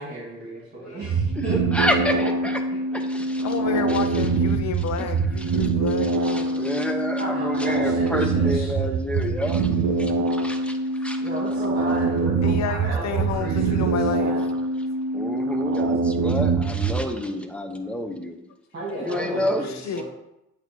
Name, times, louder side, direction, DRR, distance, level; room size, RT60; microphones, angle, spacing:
voice 1, 0.0-1.9 2.7-3.0 3.7-3.8 7.2-9.0 11.2-14.5 16.3-16.4 18.7-20.0, right 2 dB, 35° right, -6 dB, 2.2 m, -35 dB
sound 1, 1.0-17.1, right 3 dB, 60° right, 0.7 m, -24 dB
voice 2, 1.7-2.1 2.4-2.6 3.1-3.2 6.3-10.1 10.4-10.7 11.0-11.2 15.1-18.4 19.1-19.6, left 1 dB, 5° left, 4 dB, 0.8 m, -28 dB
voice 3, 3.4-6.7 12.4-14.4 16.8-17.0 19.2-20.0, left 7 dB, 65° left, 9 dB, 0.7 m, -31 dB
8.1 x 2.8 x 4.6 m, 0.86 s
cardioid pair, 90°, 30 cm